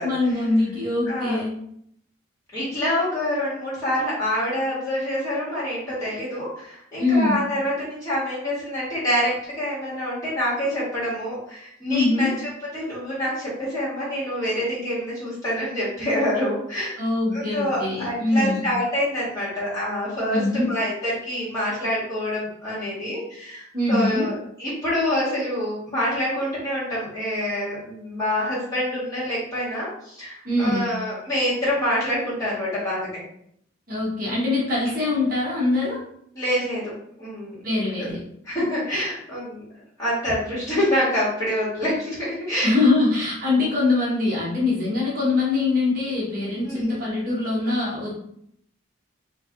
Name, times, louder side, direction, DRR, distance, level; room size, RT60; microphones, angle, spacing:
voice 1, 0.0-1.6 7.0-7.4 11.9-12.4 17.0-18.7 20.3-20.7 23.7-24.3 30.4-31.0 33.9-36.0 37.6-38.2 42.6-48.2, left 2 dB, 45° right, -5 dB, 0.8 m, -23 dB
voice 2, 1.0-1.4 2.5-16.9 17.3-33.2 36.3-36.9 37.2-37.6 38.0-38.1 38.4-39.6 40.0-42.7 46.6-47.1, equal, 15° left, -10 dB, 1.5 m, -26 dB
3.1 x 2.6 x 2.5 m, 0.70 s
head